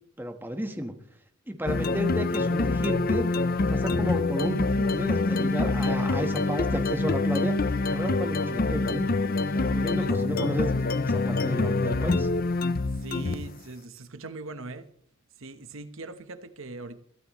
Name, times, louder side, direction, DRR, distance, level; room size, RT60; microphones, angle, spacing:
voice 1, 0.2-0.9 1.5-3.2 3.6-7.5 7.8-9.0 9.5-10.7 11.0-12.3, equal, 10° right, 1.3 m, -32 dB
sound 1, 1.7-13.6, left 3 dB, 45° left, 0.6 m, -26 dB
voice 2, 9.5-10.2 13.0-14.9 15.4-17.0, right 2 dB, 70° right, 1.1 m, -41 dB
22.5 x 13.0 x 3.1 m
head